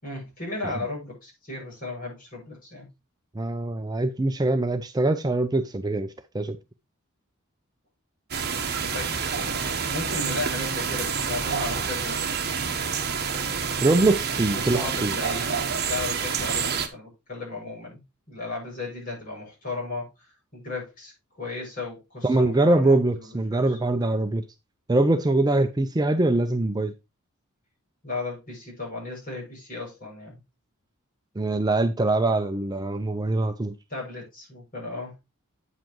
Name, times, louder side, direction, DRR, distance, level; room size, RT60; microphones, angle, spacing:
voice 1, 0.0-2.9 8.8-12.7 14.5-20.1 20.5-23.8 28.0-30.4 33.9-35.1, left 3 dB, 40° left, 6.5 m, -35 dB
voice 2, 3.3-6.6 13.8-15.1 22.2-24.4 24.9-26.9 31.4-33.7, right 2 dB, 20° right, 0.5 m, -23 dB
sound 1, 8.3-16.9, right 6 dB, 50° right, 1.1 m, -28 dB
8.9 x 7.5 x 3.0 m
head